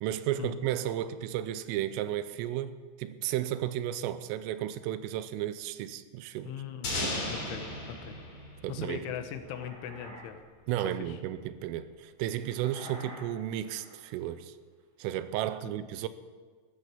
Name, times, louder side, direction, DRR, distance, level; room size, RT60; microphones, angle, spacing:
voice 1, 0.0-6.5 8.6-9.1 10.7-14.5 15.0-16.1, right 12 dB, 90° right, 3.3 m, -33 dB
sound 1, 6.4-7.3 9.1-10.3 10.6-10.9 12.4-14.2, equal, 20° right, 6.3 m, -50 dB
voice 2, 6.5-6.9 7.3-7.7 8.0-8.2 8.7-10.4 10.8-11.2 15.6-15.8, left 9 dB, 75° left, 3.4 m, -39 dB
sound 2, 6.8-9.6, left 1 dB, 45° left, 5.0 m, -36 dB
14.0 x 13.5 x 6.9 m
omnidirectional pair, 5.7 m